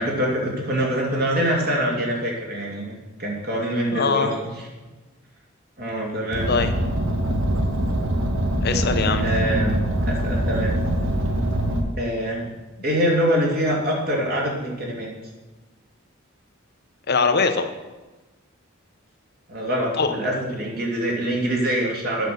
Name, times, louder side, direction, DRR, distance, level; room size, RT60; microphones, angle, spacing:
voice 1, 0.0-4.3 5.8-6.5 9.2-10.8 12.0-12.5 12.8-15.1 19.5-22.3, equal, 50° right, -2 dB, 2.6 m, -24 dB
voice 2, 3.9-4.3 6.5-6.7 8.6-9.3 17.1-17.7 20.0-20.2, left 4 dB, 55° left, 7 dB, 0.7 m, -21 dB
Car, 6.3-11.8, right 1 dB, 70° right, 1.2 m, -23 dB
9.1 x 6.0 x 6.4 m, 1.2 s
head